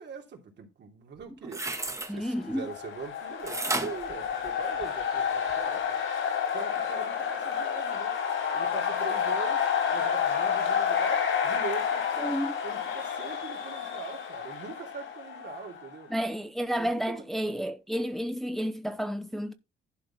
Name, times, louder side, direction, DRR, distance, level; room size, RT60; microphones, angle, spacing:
voice 1, 0.0-1.6 2.1-6.0 6.5-8.2 8.5-12.4 12.6-16.1 16.8-17.2, right 6 dB, 60° right, 3.1 m, -42 dB
sound 1, 1.2-2.1 3.5-5.0 5.5-5.6, right 2 dB, 15° right, 1.6 m, -33 dB
voice 2, 2.1-2.7 12.2-12.6 16.1-19.5, equal, ahead, 0.9 m, -31 dB
sound 2, 2.2-16.0, left 7 dB, 80° left, 4.7 m, -30 dB
11.5 x 4.3 x 5.5 m
cardioid pair, 90°, 20 cm